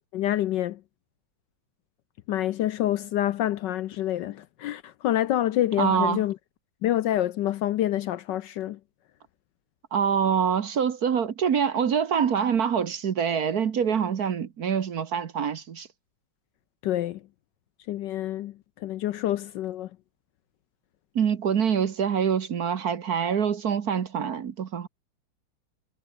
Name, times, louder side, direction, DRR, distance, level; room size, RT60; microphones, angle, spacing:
voice 1, 0.1-0.8 2.3-6.3 6.8-8.8 16.8-17.2 17.9-18.5 18.8-19.9, left 13 dB, 70° left, 1.2 m, -27 dB
voice 2, 5.8-6.2 9.9-15.9 21.1-24.9, right 7 dB, 50° right, 1.5 m, -25 dB
omnidirectional pair, 2.3 m